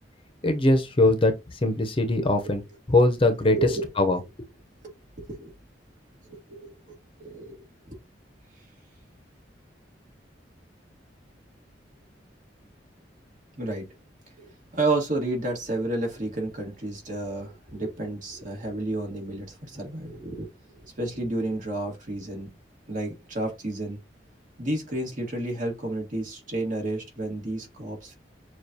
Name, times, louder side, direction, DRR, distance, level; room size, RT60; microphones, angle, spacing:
voice 1, 0.4-1.3 1.6-2.6 2.9-3.6 4.0-4.2, left 2 dB, 30° left, 0.7 m, -21 dB
voice 2, 3.5-3.9 4.8-5.5 6.3-7.6 7.9-8.0 13.6-13.9 14.4-20.5 21.0-22.5 22.9-24.0 24.6-28.1, right 2 dB, 50° right, 1.7 m, -31 dB
6.6 x 2.4 x 2.8 m
head